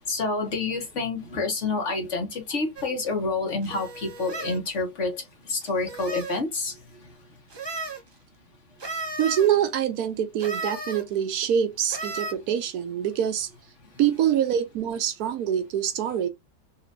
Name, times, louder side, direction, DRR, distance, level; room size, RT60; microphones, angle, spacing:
voice 1, 0.1-5.2 5.5-6.7, left 3 dB, 50° left, 1.6 m, -28 dB
sound 1, 2.8-2.9 3.6-4.6 5.6-6.4 7.5-8.0 8.8-9.5 10.4-11.0 11.9-12.3, right 3 dB, 25° right, 0.6 m, -34 dB
voice 2, 9.2-13.5 14.0-16.3, right 9 dB, 75° right, 1.1 m, -25 dB
4.3 x 2.9 x 2.5 m
omnidirectional pair, 1.6 m